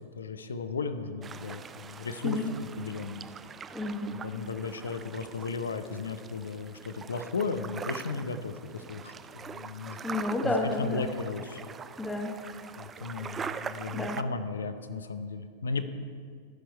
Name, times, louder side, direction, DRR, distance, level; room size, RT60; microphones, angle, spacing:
voice 1, 0.2-2.4 2.8-3.2 4.1-10.0 10.4-11.7 12.8-15.9, left 4 dB, 70° left, 10 dB, 0.6 m, -35 dB
sound 1, 1.2-14.2, right 6 dB, 20° right, 0.3 m, -43 dB
voice 2, 3.7-4.1 10.0-11.1 12.0-12.3 13.9-14.2, left 2 dB, 10° left, 3 dB, 0.9 m, -30 dB
14.5 x 6.1 x 4.5 m, 2.1 s
figure-of-eight pair, 90°, 0 cm